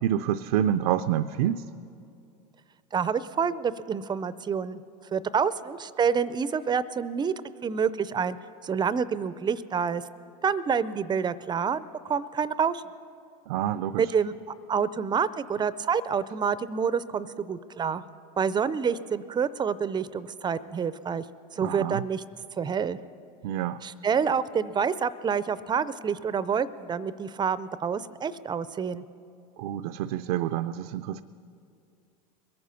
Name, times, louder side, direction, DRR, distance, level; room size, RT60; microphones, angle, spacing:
voice 1, 0.0-1.6 13.5-14.0 21.6-22.0 23.4-23.8 29.6-31.2, right 11 dB, 80° right, 9 dB, 0.4 m, -27 dB
voice 2, 2.9-4.8 5.1-7.3 7.6-8.4 8.6-10.0 10.4-12.8 14.0-14.3 14.7-18.0 18.4-21.2 21.5-22.2 22.6-23.0 23.8-29.0, right 6 dB, 25° right, 16 dB, 0.4 m, -27 dB
21.5 x 9.5 x 5.6 m, 2.5 s
supercardioid pair, 100°, 19 cm